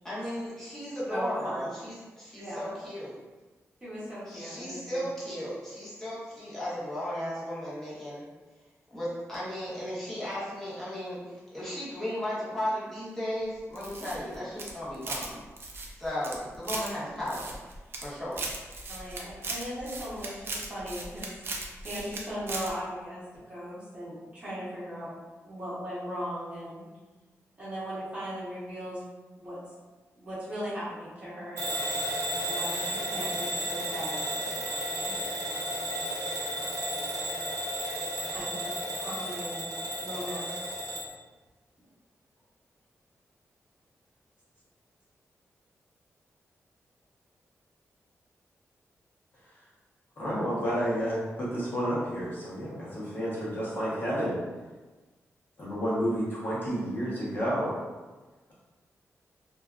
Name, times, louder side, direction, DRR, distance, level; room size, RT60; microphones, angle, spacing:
voice 1, 0.0-3.2 4.3-8.2 8.9-15.4 16.0-17.6 18.0-18.5, equal, 5° left, -9 dB, 0.9 m, -35 dB
voice 2, 1.1-1.7 2.4-2.7 3.8-5.1 18.9-21.3 21.8-25.1 25.4-26.8 27.6-29.0 29.4-29.6 30.2-31.7 32.4-34.4 35.1-35.2 38.3-40.4, equal, 25° right, -10 dB, 0.9 m, -38 dB
sound 1, 13.7-15.3 15.6-16.9 17.3-18.0 18.3-22.2 22.5-22.7, right 3 dB, 45° right, 0.4 m, -37 dB
Bell / Alarm, 31.6-41.1, right 1 dB, 85° right, 0.7 m, -33 dB
voice 3, 50.2-54.4 55.6-57.8, equal, 40° left, -9 dB, 0.8 m, -30 dB
2.6 x 2.3 x 2.3 m, 1.2 s
wide cardioid pair, 155°, 5 cm